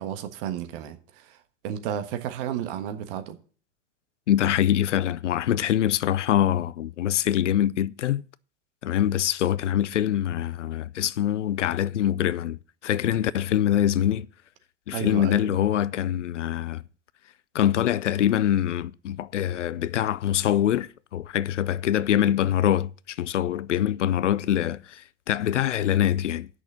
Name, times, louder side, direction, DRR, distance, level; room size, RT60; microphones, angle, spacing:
voice 1, 0.0-1.4 1.6-3.4 14.9-15.5, right 10 dB, 50° right, 1.4 m, -32 dB
voice 2, 4.3-8.2 8.8-14.3 14.9-16.8 17.5-26.5, left 11 dB, 75° left, 0.5 m, -24 dB
8.3 x 6.3 x 7.6 m
figure-of-eight pair, 90°, 36 cm